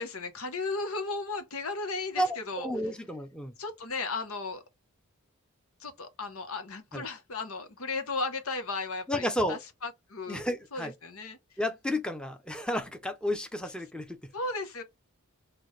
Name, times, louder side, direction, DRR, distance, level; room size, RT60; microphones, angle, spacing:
voice 1, 0.0-2.7 3.6-4.6 5.8-10.4 10.7-11.4 14.3-14.8, left 3 dB, 75° left, 1.1 m, -35 dB
voice 2, 2.2-3.5 6.9-7.0 9.1-9.6 10.3-10.9 11.6-14.2, equal, 5° left, 0.7 m, -32 dB
6.1 x 2.4 x 3.3 m
head